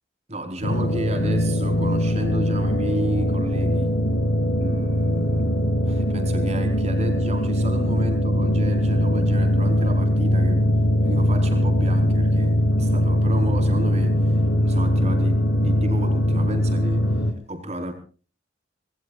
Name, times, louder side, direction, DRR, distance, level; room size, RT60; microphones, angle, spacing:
voice 1, 0.3-4.0 4.6-5.6 5.8-17.9, right 1 dB, 35° right, 5 dB, 4.8 m, -33 dB
sound 1, 0.6-17.3, equal, 80° left, 2.9 m, -21 dB
27.0 x 20.5 x 2.5 m, 0.38 s
head